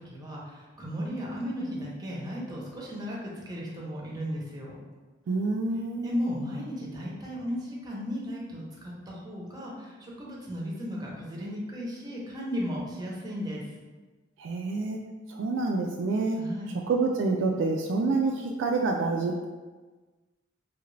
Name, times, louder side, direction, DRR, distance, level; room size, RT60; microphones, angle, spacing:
voice 1, 0.0-4.8 6.0-13.6 16.4-16.7, equal, 20° right, -4 dB, 0.7 m, -35 dB
voice 2, 5.3-6.3 14.4-15.0 15.3-16.4 16.9-19.5, right 3 dB, 65° right, 1 dB, 0.3 m, -27 dB
3.2 x 2.5 x 3.1 m, 1.3 s
head